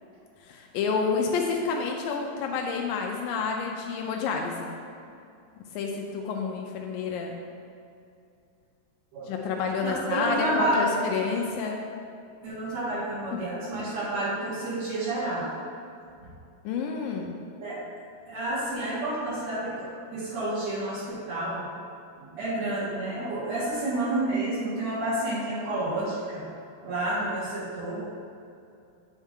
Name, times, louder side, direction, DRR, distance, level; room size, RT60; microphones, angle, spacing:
voice 1, 0.4-4.8 5.7-7.4 9.3-11.8 13.3-13.4 16.6-17.3, left 5 dB, 90° left, 1 dB, 2.0 m, -29 dB
voice 2, 9.1-9.4 9.8-10.9 12.4-15.5 17.6-17.8 18.3-21.7 22.2-26.4 26.8-28.1, right 1 dB, 55° right, -13 dB, 2.5 m, -30 dB
9.1 x 6.3 x 3.6 m, 2.5 s
omnidirectional pair, 4.6 m